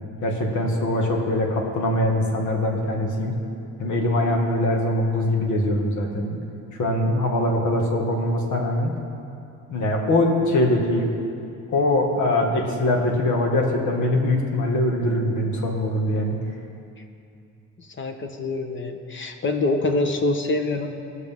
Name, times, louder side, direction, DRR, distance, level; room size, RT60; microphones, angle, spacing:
voice 1, 0.2-3.3 3.8-6.4 6.7-8.9 9.7-11.1 11.7-16.3, left 1 dB, 75° left, 1 dB, 1.9 m, -22 dB
voice 2, 17.8-20.9, left 2 dB, 40° left, 5 dB, 1.1 m, -25 dB
19.0 x 6.6 x 3.7 m, 2.5 s
cardioid pair, 90°, 30 cm